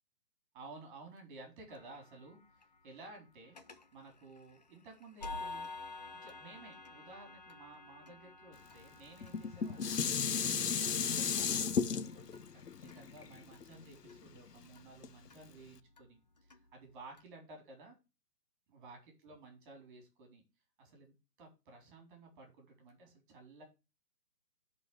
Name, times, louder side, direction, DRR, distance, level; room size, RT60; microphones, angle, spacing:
voice 1, 0.5-3.6 3.9-5.7 5.9-10.2 10.7-18.0 18.7-20.4 20.8-23.6, right 3 dB, 30° right, 3 dB, 3.9 m, -55 dB
sound 1, 1.7-17.2, left 3 dB, 25° left, 0.6 m, -52 dB
Dishes pots and pans, 9.2-14.5 15.0-15.1, left 6 dB, 75° left, 1.1 m, -34 dB
10.0 x 4.7 x 4.9 m, 0.28 s
hypercardioid pair, 150°, 48 cm